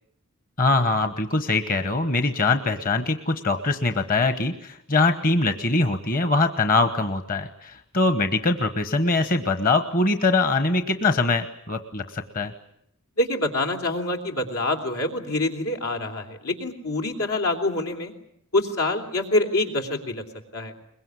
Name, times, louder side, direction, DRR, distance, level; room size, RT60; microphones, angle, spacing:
voice 1, 0.6-12.5, left 3 dB, 40° left, 9 dB, 1.2 m, -23 dB
voice 2, 13.2-18.1 18.5-20.2 20.5-20.7, left 2 dB, 85° left, 4 dB, 3.4 m, -26 dB
23.0 x 21.5 x 9.7 m, 0.72 s
head